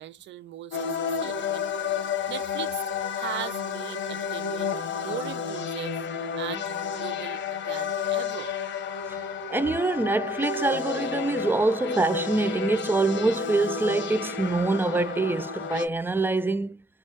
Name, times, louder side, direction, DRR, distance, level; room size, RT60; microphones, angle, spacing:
voice 1, 0.0-1.7 2.3-2.8 3.1-6.0 6.4-8.5, right 11 dB, 70° right, 0.5 m, -39 dB
sound 1, 0.7-15.9, left 6 dB, 65° left, 0.9 m, -31 dB
voice 2, 9.5-16.8, right 3 dB, 10° right, 0.4 m, -25 dB
4.5 x 2.4 x 2.7 m
cardioid pair, 90°, 20 cm